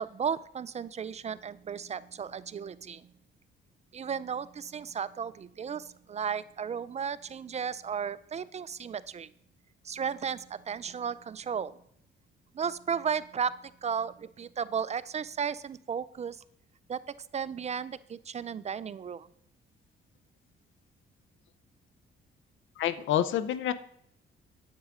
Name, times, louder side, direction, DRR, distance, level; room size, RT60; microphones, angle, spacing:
voice 1, 0.0-3.1 3.9-9.3 9.8-11.8 12.5-16.4 16.9-17.0 17.3-19.3, right 7 dB, 35° right, 17 dB, 0.4 m, -34 dB
voice 2, 22.8-23.7, left 11 dB, 75° left, 14 dB, 0.6 m, -28 dB
9.4 x 8.2 x 3.7 m, 0.70 s
cardioid pair, 90°, 20 cm